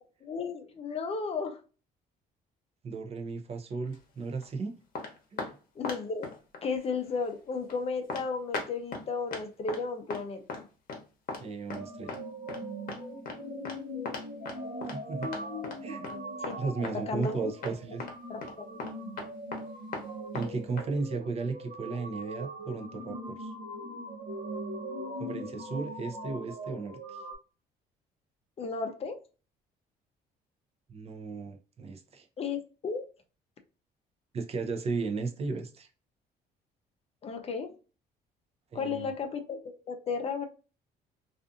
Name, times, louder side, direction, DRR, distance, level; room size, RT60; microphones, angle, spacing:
voice 1, 0.2-1.6 5.8-6.3 6.6-10.7 16.1-17.5 18.3-18.7 28.6-29.2 32.4-33.1 37.2-37.7 38.7-40.5, left 4 dB, 35° left, 0.5 m, -34 dB
voice 2, 2.8-4.7 5.3-5.5 11.4-12.2 14.9-15.3 15.8-16.1 16.6-18.0 20.3-23.5 25.2-27.2 30.9-32.3 34.3-35.9 38.7-39.1, right 4 dB, 35° right, 0.5 m, -35 dB
sound 1, 3.9-4.4 4.9-5.5 5.8-6.6 7.1-7.2 7.7-7.8 8.1-8.2 8.5-9.0 9.3-9.8 10.1-10.2 10.5-11.0 11.3-11.4 11.7-11.8 12.1-12.2 12.5-12.6 12.9-13.0 13.3-13.4 13.6-13.8 14.0-15.8 16.0-16.1 16.4-16.9 17.2-17.4 17.6-17.7 18.0-18.1 18.4-18.5 18.8-19.6 19.9-20.1 20.3-20.5 20.8-20.9, left 4 dB, 55° left, 0.9 m, -38 dB
sound 2, 11.7-27.3, equal, 75° right, 0.8 m, -40 dB
2.5 x 2.4 x 2.4 m
cardioid pair, 110°, 17 cm